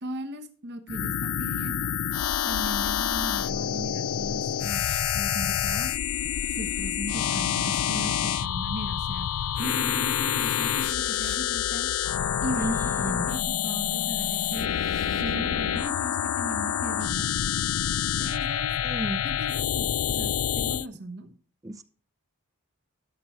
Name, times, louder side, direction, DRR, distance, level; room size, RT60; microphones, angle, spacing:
voice 1, 0.0-1.9 2.5-5.9 6.5-11.9 12.4-14.7 15.1-17.6 18.2-18.7 19.2-21.4, right 1 dB, 50° right, 1.0 m, -37 dB
sound 1, 0.9-20.9, left 10 dB, 80° left, 0.4 m, -27 dB
sound 2, 3.2-16.1, left 1 dB, 5° left, 1.0 m, -53 dB
voice 2, 12.6-13.4 18.8-19.2 21.6-21.8, right 1 dB, 15° right, 0.5 m, -33 dB
12.5 x 6.1 x 4.2 m
head